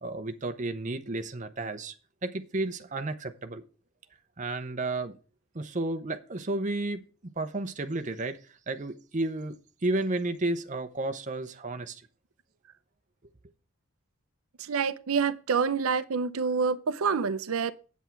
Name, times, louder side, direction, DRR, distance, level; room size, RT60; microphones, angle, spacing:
voice 1, 0.0-1.9 2.2-3.6 4.4-5.2 5.5-9.5 9.8-12.0, right 2 dB, 35° right, 0.7 m, -32 dB
voice 2, 14.6-17.7, right 5 dB, 85° right, 0.6 m, -27 dB
8.3 x 8.1 x 4.5 m
head